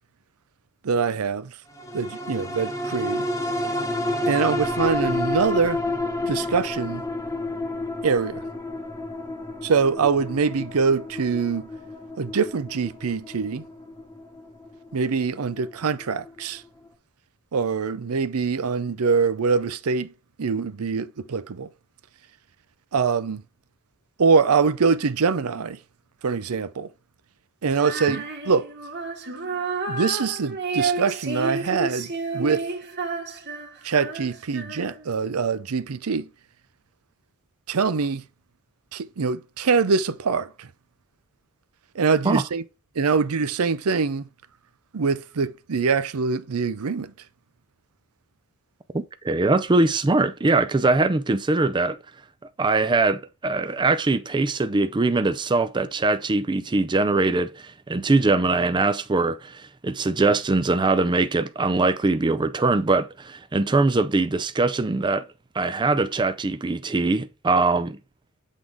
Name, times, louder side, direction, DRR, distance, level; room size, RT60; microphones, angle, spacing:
voice 1, 0.8-1.5 1.9-3.3 4.2-5.8 6.3-7.0 8.0-8.4 9.6-11.7 12.2-13.7 14.9-16.6 17.5-20.1 20.4-21.7 22.9-23.4 24.2-25.8 26.2-26.9 27.6-28.7 29.9-32.7 33.8-36.3 37.7-38.2 38.9-40.7 41.9-42.6 43.0-44.2 44.9-47.1, right 5 dB, 80° right, 0.6 m, -24 dB
sound 1, 1.8-16.4 16.9-17.0, left 1 dB, 15° left, 1.0 m, -30 dB
Female singing, 27.8-35.2, right 4 dB, 50° right, 1.8 m, -31 dB
voice 2, 48.9-52.0 52.6-65.2 65.6-68.0, right 3 dB, 20° right, 0.4 m, -22 dB
8.2 x 3.8 x 3.5 m
head